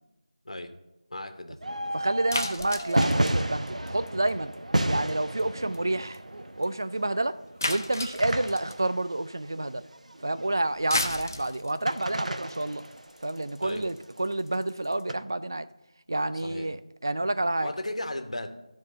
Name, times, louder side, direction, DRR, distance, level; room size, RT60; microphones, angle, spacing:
voice 1, 1.1-1.6 13.6-13.9 16.4-16.7 17.6-18.5, left 1 dB, 65° left, 7 dB, 1.3 m, -35 dB
sound 1, 1.6-10.8 11.9-13.7 15.1-15.2, right 1 dB, 75° right, 0.9 m, -32 dB
voice 2, 1.9-4.5 4.9-6.2 6.6-7.4 7.7-9.8 10.2-12.8 13.2-15.7 16.1-17.7, right 2 dB, 35° right, 13 dB, 0.4 m, -29 dB
sound 2, 2.3-4.5 4.8-5.1 5.4-5.5 5.7-5.8 6.1-6.2 6.6-6.7 7.6-8.9 10.7-15.0, left 2 dB, 25° left, 0.7 m, -34 dB
12.5 x 4.5 x 6.6 m, 0.94 s
figure-of-eight pair, 180°, 4 cm